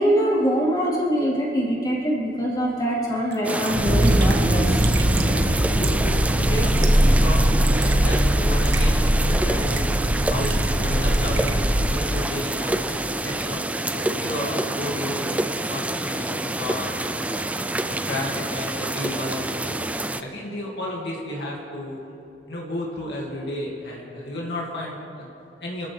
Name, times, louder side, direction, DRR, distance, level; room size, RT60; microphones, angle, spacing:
voice 1, 0.0-4.8, equal, 25° left, -6 dB, 3.7 m, -23 dB
Raindrop / Drip, 3.3-3.4 3.7-3.8 4.0-4.4 4.8-5.3 5.8-6.1 6.6-7.1 7.4-8.0 8.6-8.9 9.5-10.0 10.3-10.8 11.1-11.6, right 8 dB, 80° right, 1.3 m, -35 dB
sound 1, 3.4-20.2, right 2 dB, 10° right, 0.4 m, -27 dB
sound 2, 3.7-12.0, equal, 55° right, 1.8 m, -20 dB
voice 2, 5.2-5.5 5.8-9.8 10.3-10.5 10.8-17.5 18.0-19.9 20.2-22.0 22.5-25.9, left 1 dB, 70° left, -3 dB, 2.3 m, -33 dB
28.0 x 13.0 x 3.4 m, 2.9 s
head